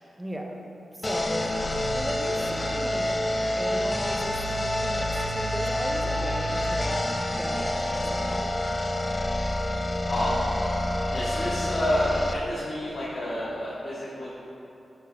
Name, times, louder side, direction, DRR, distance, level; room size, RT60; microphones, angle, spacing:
voice 1, 0.2-0.6 0.9-3.1 3.6-8.6, equal, 10° right, 1 dB, 0.8 m, -36 dB
sound 1, 1.0-12.3, left 1 dB, 25° left, 0.5 m, -28 dB
voice 2, 10.1-10.4 11.1-14.3, left 1 dB, 65° left, -9 dB, 1.4 m, -29 dB
8.9 x 8.0 x 2.3 m, 2.9 s
cardioid pair, 70°, 0 cm